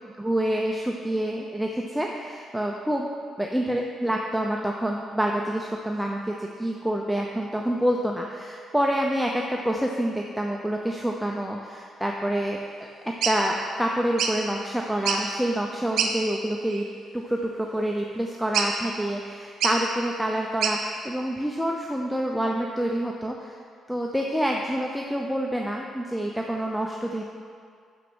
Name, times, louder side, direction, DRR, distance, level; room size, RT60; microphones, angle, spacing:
voice 1, 0.1-3.1 3.4-12.6 13.3-16.8 17.1-23.6 23.9-27.2, right 1 dB, ahead, 0 dB, 0.6 m, -27 dB
sound 1, 13.2-13.4 14.2-14.4 14.9-15.3 16.0-16.1 16.7-16.9 18.5-18.9 19.6-19.8 20.6-20.8, right 6 dB, 75° right, 0.8 m, -26 dB
6.2 x 6.2 x 6.2 m, 2.2 s
cardioid pair, 90°, 0 cm